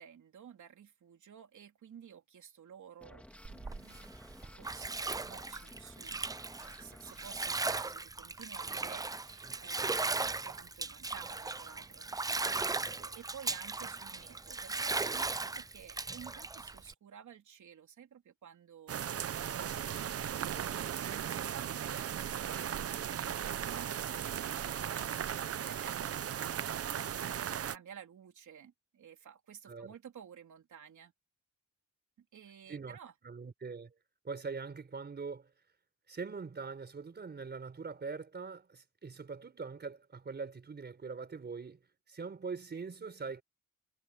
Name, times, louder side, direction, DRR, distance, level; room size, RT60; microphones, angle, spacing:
voice 1, 0.0-4.1 4.5-26.4 26.7-31.1 32.2-33.1, right 8 dB, 70° right, 3.3 m, -53 dB
sound 1, 3.0-7.4, left 1 dB, 5° left, 2.0 m, -54 dB
Bathtub (filling or washing), 3.4-16.9, right 3 dB, 15° right, 0.3 m, -37 dB
sound 2, 18.9-27.8, right 9 dB, 50° right, 0.6 m, -37 dB
voice 2, 33.2-33.9 34.2-35.5 36.1-43.4, right 4 dB, 35° right, 4.2 m, -42 dB
wide cardioid pair, 170°, 31 cm